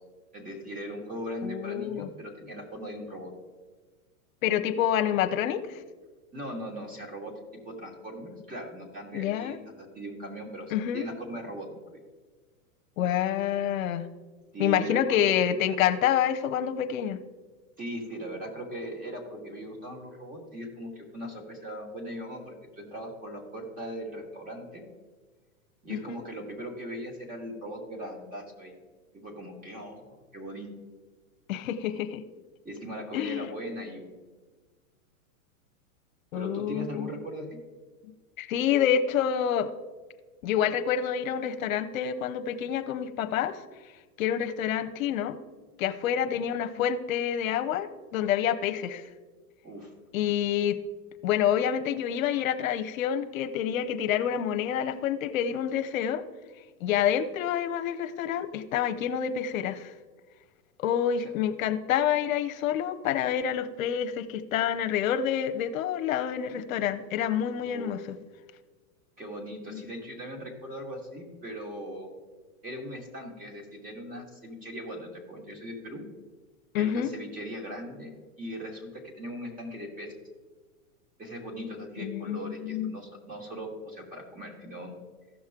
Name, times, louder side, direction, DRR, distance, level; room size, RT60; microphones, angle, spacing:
voice 1, 0.3-3.3 6.3-7.4 7.6-12.0 14.5-15.3 17.8-24.8 25.8-28.8 29.1-30.7 32.6-34.1 36.3-37.5 46.3-46.4 49.6-49.9 61.2-61.3 67.5-68.0 69.2-72.1 72.6-76.1 76.8-80.1 81.2-84.9, equal, 20° right, 1 dB, 2.1 m, -39 dB
voice 2, 1.4-2.1 4.4-5.8 9.1-9.6 10.7-11.0 13.0-14.1 14.6-17.2 25.9-26.2 31.5-32.2 33.1-33.5 36.3-37.1 38.0-38.1 38.4-39.7 40.4-43.6 44.2-45.4 45.8-49.1 50.1-50.8 51.2-56.2 56.8-59.9 60.8-68.2 69.7-69.8 76.7-77.1 82.0-82.9, left 9 dB, 70° left, 9 dB, 0.8 m, -28 dB
15.0 x 6.2 x 3.7 m, 1.4 s
hypercardioid pair, 140°, 43 cm